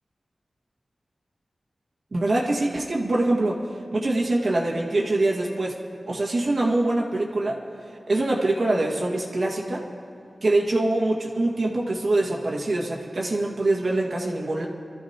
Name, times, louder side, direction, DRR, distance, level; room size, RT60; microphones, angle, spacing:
voice 1, 2.1-3.6 3.9-5.8 6.1-7.6 8.1-9.8 10.4-14.7, right 2 dB, 65° right, -1 dB, 1.8 m, -24 dB
25.0 x 13.5 x 2.9 m, 2.4 s
wide cardioid pair, 60°, 0 cm